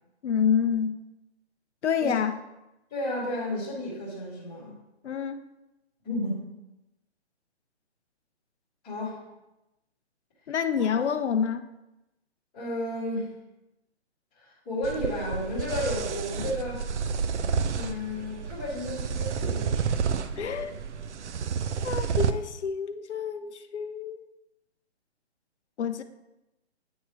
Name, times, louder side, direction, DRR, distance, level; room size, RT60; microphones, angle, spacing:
voice 1, 0.2-1.0 1.8-2.3 5.0-5.4 10.5-11.7 20.4-20.8 21.8-24.2 25.8-26.0, left 7 dB, 85° left, 9 dB, 0.6 m, -28 dB
voice 2, 2.9-4.8 6.0-6.4 8.8-9.2 10.8-11.0 12.5-13.3 14.3-16.9 17.7-20.0, left 1 dB, 10° left, -11 dB, 1.2 m, -33 dB
sound 1, 14.8-22.3, right 6 dB, 85° right, 0.6 m, -30 dB
9.2 x 3.2 x 4.4 m, 0.95 s
hypercardioid pair, 180°, 34 cm